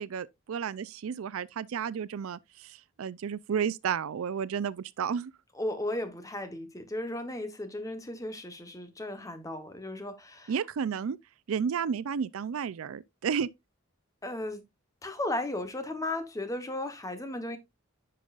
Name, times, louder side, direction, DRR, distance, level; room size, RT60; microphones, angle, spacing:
voice 1, 0.0-5.3 10.5-11.2 11.5-13.5, right 7 dB, 85° right, 0.4 m, -32 dB
voice 2, 5.5-10.5 14.2-14.6 15.0-17.6, left 1 dB, 15° left, 1.0 m, -35 dB
10.0 x 5.4 x 2.4 m
head